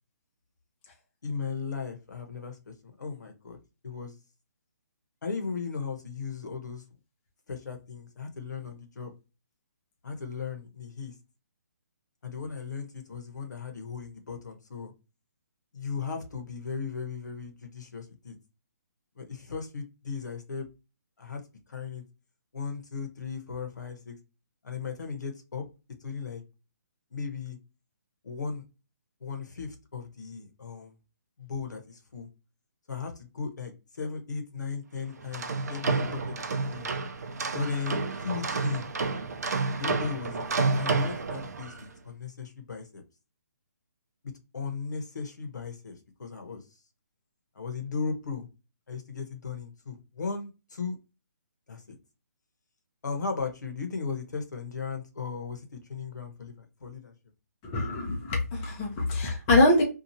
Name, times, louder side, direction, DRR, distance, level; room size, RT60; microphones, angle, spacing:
voice 1, 1.2-3.6 3.8-4.1 5.2-6.8 7.5-9.1 10.0-11.1 12.2-14.9 15.7-18.3 19.1-20.7 21.2-21.4 21.7-22.0 22.5-24.2 24.6-25.6 26.0-26.4 27.1-27.6 28.2-28.6 29.2-30.9 31.4-32.3 32.9-36.9 37.5-38.9 39.8-41.7 42.0-43.0 44.5-46.6 47.5-48.5 48.9-51.0 51.7-52.0 53.0-57.1, left 5 dB, 85° left, 0.9 m, -36 dB
sound 1, 35.2-41.9, right 4 dB, 70° right, 0.6 m, -30 dB
voice 2, 57.6-59.8, left 2 dB, 15° left, 0.5 m, -24 dB
2.8 x 2.4 x 2.7 m
hypercardioid pair, 165°, 9 cm